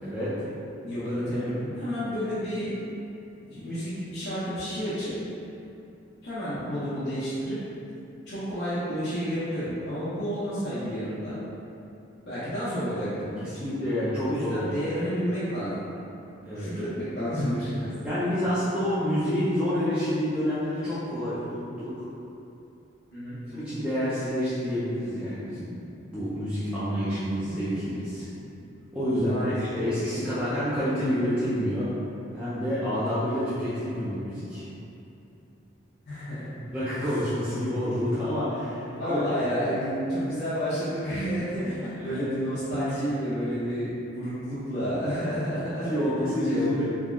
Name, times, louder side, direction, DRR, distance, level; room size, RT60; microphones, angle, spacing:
voice 1, 0.0-0.5 13.4-14.8 16.5-16.7 18.0-22.1 23.5-25.7 26.1-28.3 28.9-31.9 32.3-34.7 36.7-39.2 45.8-46.8, equal, 5° right, -14 dB, 0.4 m, -28 dB
voice 2, 0.8-2.7 3.5-5.1 6.2-7.6 8.3-11.4 12.2-13.5 14.3-15.7 16.5-17.9 23.1-23.8 29.1-29.5 36.1-36.5 38.8-45.9 46.2-46.8, equal, 60° left, -14 dB, 0.7 m, -30 dB
3.4 x 2.1 x 2.3 m, 2.8 s
head